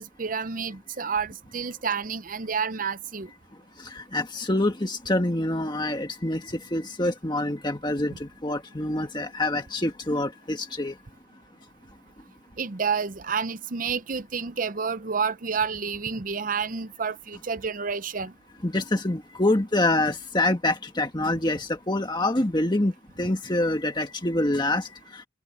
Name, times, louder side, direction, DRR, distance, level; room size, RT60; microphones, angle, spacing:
voice 1, 0.0-3.3 12.6-18.3, right 5 dB, 45° right, 0.7 m, -29 dB
voice 2, 3.8-10.9 18.6-25.3, left 1 dB, 25° left, 1.7 m, -26 dB
head